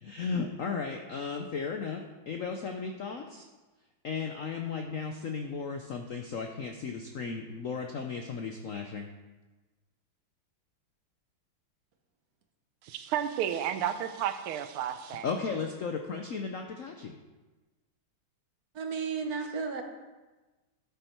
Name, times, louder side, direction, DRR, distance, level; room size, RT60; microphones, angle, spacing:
voice 1, 0.0-3.4 4.0-9.1 15.2-17.1, left 5 dB, 80° left, 4 dB, 0.7 m, -35 dB
voice 2, 12.8-15.3, right 9 dB, 80° right, 10 dB, 1.6 m, -32 dB
voice 3, 18.7-19.8, right 5 dB, 50° right, 4 dB, 1.3 m, -33 dB
12.5 x 7.1 x 4.5 m, 1.2 s
omnidirectional pair, 2.4 m